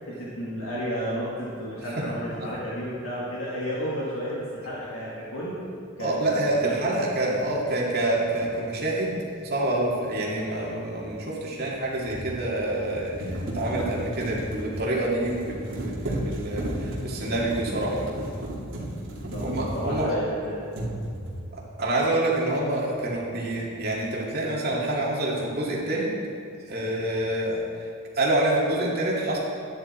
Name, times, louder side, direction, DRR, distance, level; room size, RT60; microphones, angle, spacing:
voice 1, 0.0-5.6 6.0-7.3 10.9-11.0 19.0-19.4 19.7-20.7 21.8-21.9, equal, 70° left, -7 dB, 2.1 m, -33 dB
voice 2, 6.0-9.2 9.4-18.0 19.4-20.2 21.5-26.1 26.7-27.6 28.2-29.4, right 1 dB, 50° right, -3 dB, 2.4 m, -27 dB
sound 1, 8.4-8.5 11.6-20.3 20.7-21.5, right 1 dB, 65° right, 2.6 m, -34 dB
12.0 x 9.8 x 4.4 m, 2.5 s
head